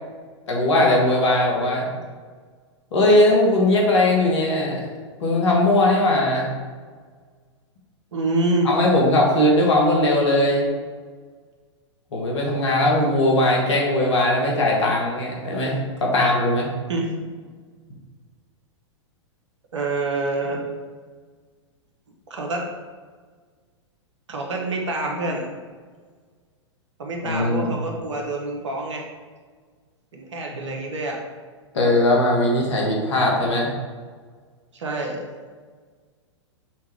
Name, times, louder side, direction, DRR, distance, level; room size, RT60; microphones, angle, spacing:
voice 1, 0.5-1.9 2.9-4.8 5.2-6.5 8.6-10.6 12.1-16.7 27.2-27.7 31.7-33.7, left 1 dB, 70° left, -2 dB, 1.3 m, -19 dB
voice 2, 8.1-8.7 16.9-17.1 19.7-20.7 22.3-22.7 24.3-25.5 27.0-29.0 30.1-31.2 34.7-35.2, right 2 dB, 70° right, 0 dB, 0.9 m, -26 dB
5.6 x 2.4 x 3.3 m, 1.5 s
figure-of-eight pair, 105°, 16 cm